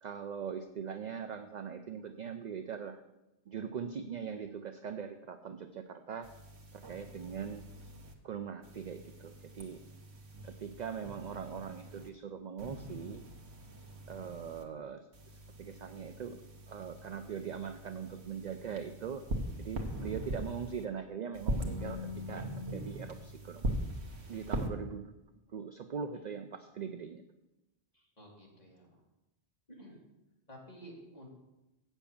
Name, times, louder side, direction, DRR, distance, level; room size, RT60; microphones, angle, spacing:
voice 1, 0.0-3.0 3.5-6.3 6.7-7.6 8.2-9.8 10.4-13.2 14.1-15.1 15.6-16.4 16.7-19.2 19.6-24.0 24.3-25.1 25.5-27.2, right 7 dB, 50° right, 8 dB, 0.6 m, -41 dB
sound 1, 6.2-8.1 8.6-12.1 12.6-14.6 15.1-20.8 21.3-24.7, right 1 dB, 85° right, 1.4 m, -41 dB
voice 2, 28.2-28.9 29.7-29.9 30.5-31.3, equal, 40° left, -3 dB, 2.7 m, -51 dB
8.2 x 7.2 x 7.0 m, 0.97 s
omnidirectional pair, 1.1 m